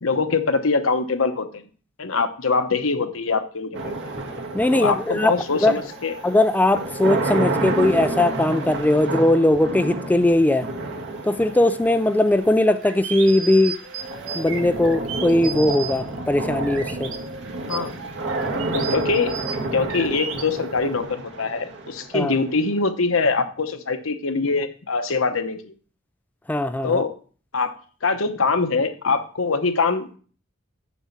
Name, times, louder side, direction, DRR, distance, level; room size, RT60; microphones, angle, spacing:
voice 1, 0.0-1.6 2.0-3.7 4.7-6.2 17.7-17.9 18.7-19.3 19.7-25.7 26.8-27.1 27.5-27.7 28.0-30.2, left 4 dB, 80° left, 1.0 m, -23 dB
sound 1, 3.7-22.8, right 2 dB, 65° right, 1.9 m, -30 dB
voice 2, 4.5-5.3 5.6-5.7 6.2-10.7 11.2-13.8 14.3-17.1 22.1-22.3 26.5-27.0, left 1 dB, 10° left, 0.3 m, -19 dB
sound 2, 12.3-17.2 17.6-20.4, right 6 dB, 80° right, 1.6 m, -34 dB
7.2 x 5.5 x 7.3 m
head